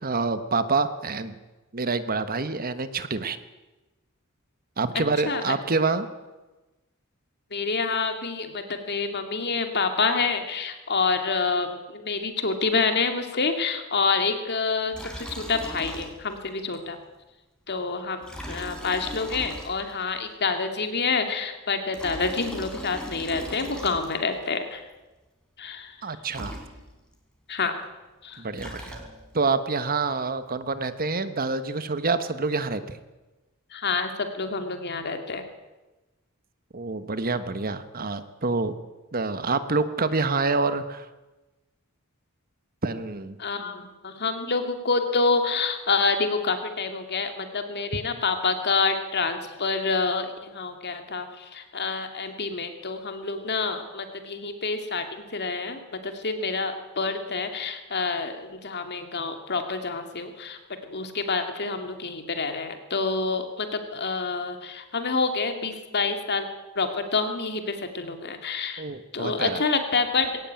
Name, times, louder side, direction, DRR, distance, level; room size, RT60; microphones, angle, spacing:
voice 1, 0.0-1.3 1.7-3.4 4.8-6.1 26.0-26.6 28.4-29.0 29.3-33.0 36.7-38.8 39.1-41.1 42.8-43.4 68.8-69.6, right 3 dB, 45° right, 11 dB, 1.2 m, -27 dB
voice 2, 4.9-5.4 7.5-17.0 17.7-24.8 25.6-26.0 27.5-27.7 28.2-28.4 33.7-35.5 43.4-66.5 66.8-68.8 69.1-70.5, left 4 dB, 50° left, 6 dB, 2.5 m, -27 dB
Liquid, 14.9-16.4 16.7-16.8 18.2-20.1 21.7-24.4 26.0-26.1 26.3-27.1 28.3-29.4, equal, 5° left, 4.2 m, -39 dB
20.5 x 18.0 x 9.0 m, 1.1 s
head